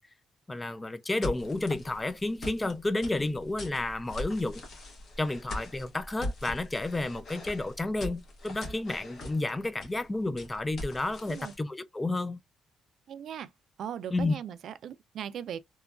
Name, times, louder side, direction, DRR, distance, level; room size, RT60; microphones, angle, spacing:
voice 1, 0.5-4.6 5.2-12.4 14.1-14.3, left 2 dB, 20° left, 0.4 m, -31 dB
sound 1, 1.2-11.6, left 1 dB, 55° left, 1.1 m, -41 dB
voice 2, 13.1-13.5 13.8-15.6, right 9 dB, 65° right, 0.4 m, -38 dB
3.0 x 2.2 x 2.3 m
cardioid pair, 90°, 0 cm